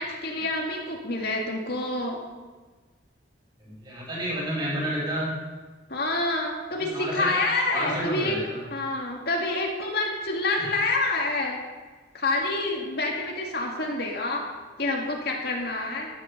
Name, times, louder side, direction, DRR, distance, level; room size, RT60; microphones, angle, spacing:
voice 1, 0.0-2.2 5.9-8.4 8.7-11.6 12.1-14.4 14.8-16.1, left 2 dB, 55° left, 0 dB, 2.1 m, -27 dB
voice 2, 3.6-5.4 6.8-7.3 7.7-8.6, right 1 dB, 25° right, -4 dB, 5.9 m, -30 dB
14.5 x 10.5 x 6.6 m, 1.3 s
head